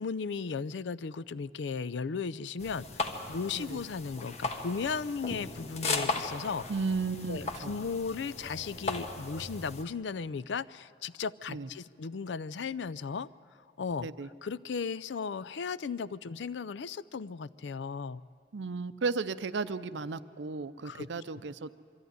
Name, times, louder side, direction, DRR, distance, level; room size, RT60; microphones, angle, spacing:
voice 1, 0.0-6.6 7.3-13.3 13.8-14.1 14.4-18.2 20.8-21.1, left 5 dB, 75° left, 17 dB, 0.4 m, -36 dB
sound 1, 2.6-9.8, left 3 dB, 35° left, 1.3 m, -37 dB
voice 2, 6.7-7.7 11.5-11.7 14.0-14.3 18.5-21.8, right 4 dB, 80° right, 14 dB, 0.6 m, -34 dB
23.5 x 14.0 x 9.3 m, 2.3 s
head